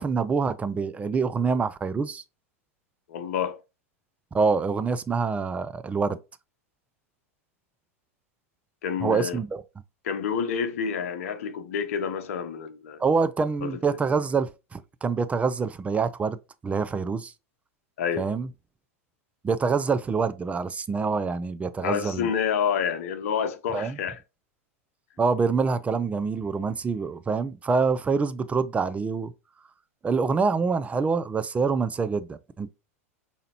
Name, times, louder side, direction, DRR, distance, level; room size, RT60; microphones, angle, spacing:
voice 1, 0.0-2.2 4.3-6.2 9.0-9.6 13.0-16.4 16.6-17.3 18.2-18.5 19.4-22.3 23.7-24.0 25.2-29.3 30.0-32.7, right 5 dB, 15° right, 0.4 m, -26 dB
voice 2, 3.1-3.6 8.8-9.4 10.0-13.0 13.6-13.7 18.0-18.3 21.8-24.2, left 7 dB, 70° left, 0.8 m, -28 dB
5.0 x 2.8 x 2.9 m
hypercardioid pair, 95°, 8 cm